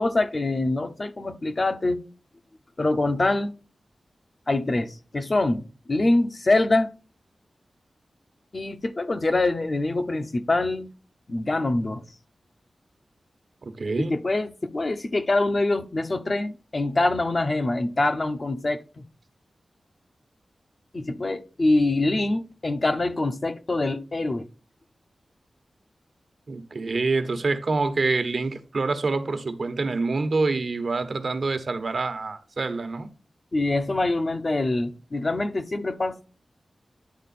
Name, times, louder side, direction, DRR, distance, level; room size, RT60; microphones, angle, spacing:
voice 1, 0.0-2.0 2.8-3.5 4.5-6.9 8.5-10.9 11.3-12.0 14.0-19.0 20.9-24.5 33.5-36.3, left 2 dB, 40° left, 0.9 m, -24 dB
voice 2, 13.6-14.1 26.5-33.1, right 3 dB, 65° right, 1.2 m, -26 dB
10.5 x 3.7 x 4.2 m
wide cardioid pair, 80°, 0 cm